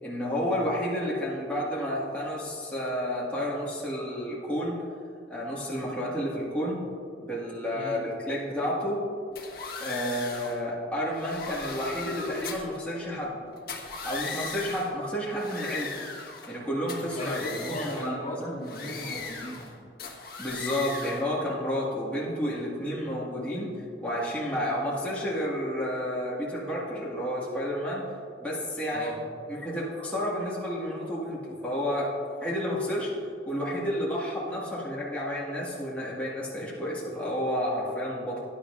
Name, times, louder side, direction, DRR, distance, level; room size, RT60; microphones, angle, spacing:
voice 1, 0.0-4.8 5.3-6.9 7.2-9.0 9.8-13.4 14.0-15.9 16.5-17.4 17.7-18.5 20.4-23.7 24.0-28.1 28.4-29.1 29.5-33.1 33.5-38.4, equal, 10° left, -8 dB, 1.8 m, -31 dB
sound 1, 9.4-10.6 11.1-12.8 13.6-14.9 15.3-16.6 16.9-18.1 18.6-19.7 20.0-21.3, left 4 dB, 55° left, 1.6 m, -38 dB
voice 2, 17.1-19.7 28.9-29.2, equal, 40° left, -3 dB, 2.1 m, -37 dB
19.0 x 10.5 x 2.6 m, 2.4 s
head